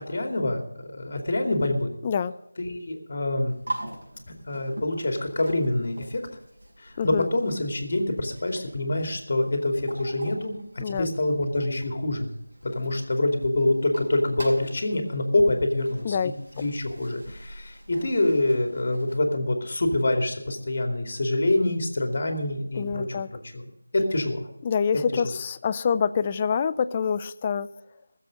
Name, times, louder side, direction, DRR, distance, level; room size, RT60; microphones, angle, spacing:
voice 1, 0.0-1.9 2.6-3.5 4.5-6.2 6.8-10.6 10.9-12.3 12.6-16.2 16.6-23.6 23.9-24.5 25.1-25.2, left 2 dB, 40° left, 4 dB, 2.5 m, -26 dB
voice 2, 2.0-2.3 7.0-7.3 10.8-11.1 16.0-16.3 22.7-23.3 24.6-27.7, left 6 dB, 15° left, 14 dB, 0.4 m, -26 dB
sound 1, 3.5-19.2, right 1 dB, 60° right, 5.5 m, -43 dB
18.5 x 7.7 x 6.4 m, 0.85 s
figure-of-eight pair, 175°, 0 cm